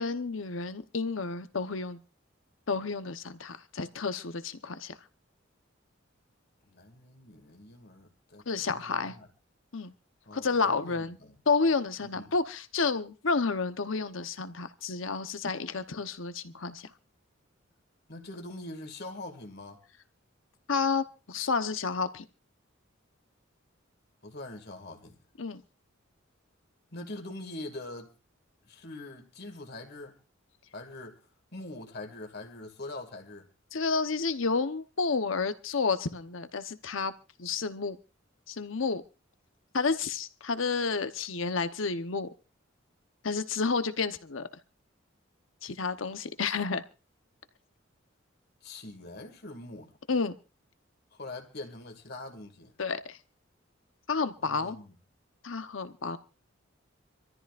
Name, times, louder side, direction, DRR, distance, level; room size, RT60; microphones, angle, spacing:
voice 1, 0.0-2.0 2.7-4.9 8.5-9.1 9.7-9.9 10.3-11.2 11.5-16.9 20.7-22.2 25.4-25.6 33.7-37.1 37.4-38.0 38.5-39.0 39.7-42.3 43.2-44.5 45.6-46.8 50.1-50.3 52.8-53.2 54.1-54.8 55.4-56.2, left 4 dB, 75° left, 1.0 m, -30 dB
voice 2, 6.6-9.3 10.3-11.3 12.0-12.3 18.1-19.8 24.2-25.2 26.9-28.1 28.7-30.2 30.7-31.2 31.5-33.5 48.6-49.9 51.1-52.7 54.4-54.9, left 2 dB, 55° left, 2.2 m, -43 dB
26.0 x 14.0 x 2.5 m
head